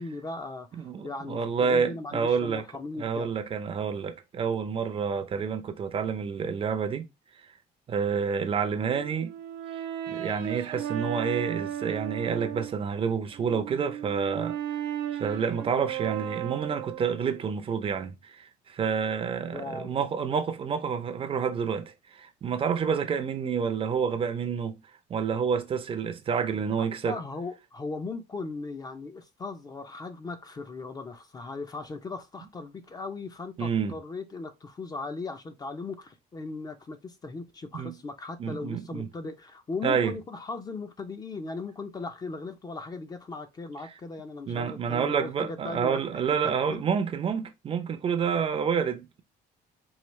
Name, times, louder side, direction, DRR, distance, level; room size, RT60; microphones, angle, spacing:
voice 1, 0.0-3.4 19.5-20.0 26.8-46.0 46.4-46.8, left 3 dB, 20° left, 0.5 m, -38 dB
voice 2, 0.8-2.6 3.0-7.1 7.9-9.3 10.1-14.8 15.2-24.8 25.1-27.2 33.6-33.9 37.7-37.9 38.4-39.1 39.8-40.1 44.5-49.2, right 6 dB, 30° right, 0.5 m, -29 dB
Brass instrument, 8.8-12.8 13.3-17.4, right 11 dB, 90° right, 0.9 m, -35 dB
4.7 x 2.4 x 3.1 m
cardioid pair, 135°, 17 cm